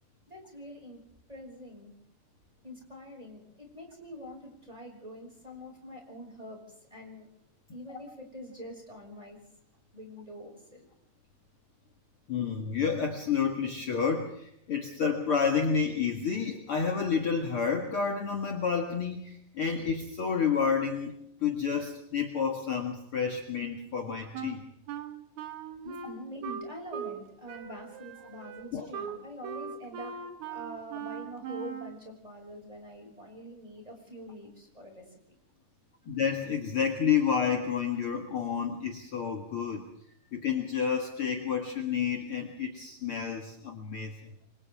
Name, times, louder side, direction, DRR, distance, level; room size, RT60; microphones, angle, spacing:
voice 1, 0.3-1.0 1.3-1.9 2.6-7.3 7.7-9.4 9.9-10.9 25.8-35.2, equal, 10° right, 1 dB, 5.9 m, -45 dB
voice 2, 12.3-21.1 21.4-24.6 28.7-28.9 36.0-39.8 40.3-44.3, left 6 dB, 55° left, 2 dB, 1.5 m, -30 dB
Wind instrument woodwind instrument, 24.3-27.2 27.5-32.0, right 7 dB, 85° right, 1.6 m, -40 dB
29.0 x 24.5 x 3.6 m, 0.75 s
omnidirectional pair, 5.3 m